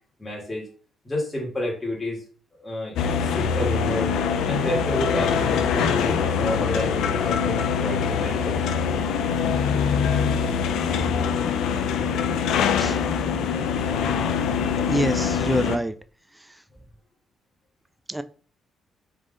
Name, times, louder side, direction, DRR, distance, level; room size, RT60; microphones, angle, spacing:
voice 1, 0.2-0.7 1.0-2.2 2.6-2.9 3.2-4.1 4.5-8.6, left 1 dB, 15° left, -4 dB, 1.7 m, -30 dB
sound 1, 3.0-15.8, left 6 dB, 85° left, 0.5 m, -23 dB
voice 2, 14.9-15.9 18.1-18.2, right 1 dB, 10° right, 12 dB, 0.3 m, -26 dB
3.6 x 3.1 x 3.9 m, 0.41 s
cardioid pair, 90°, 0 cm